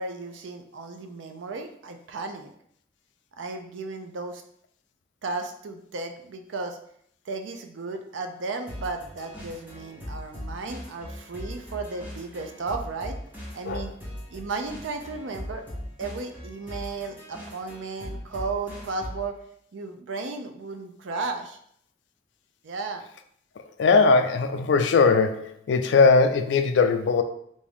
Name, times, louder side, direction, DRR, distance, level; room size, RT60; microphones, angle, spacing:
voice 1, 0.0-2.5 3.4-4.4 5.2-6.8 7.3-13.2 13.5-13.9 14.3-15.6 16.0-19.4 19.7-21.6 22.6-23.0, right 3 dB, 85° right, 5 dB, 0.5 m, -34 dB
sound 1, 8.7-19.3, left 1 dB, 10° right, 0.8 m, -40 dB
voice 2, 23.8-27.2, left 4 dB, 70° left, 8 dB, 0.3 m, -20 dB
3.5 x 2.6 x 3.4 m, 0.69 s
head